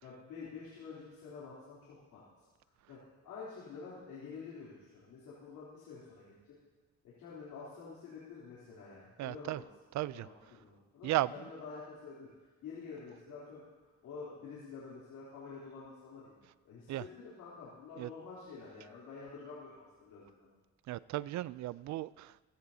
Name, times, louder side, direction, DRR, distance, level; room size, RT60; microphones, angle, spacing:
voice 1, 0.0-2.2 2.9-6.5 7.0-9.7 10.1-12.3 12.6-13.6 14.0-16.4 16.6-20.5, left 5 dB, 90° left, 3.3 m, -48 dB
voice 2, 9.2-9.6 9.9-10.3 11.0-11.3 16.9-17.0 18.0-18.1 20.9-22.5, right 16 dB, 65° right, 0.4 m, -35 dB
16.0 x 16.0 x 2.8 m
cardioid pair, 90°, 30 cm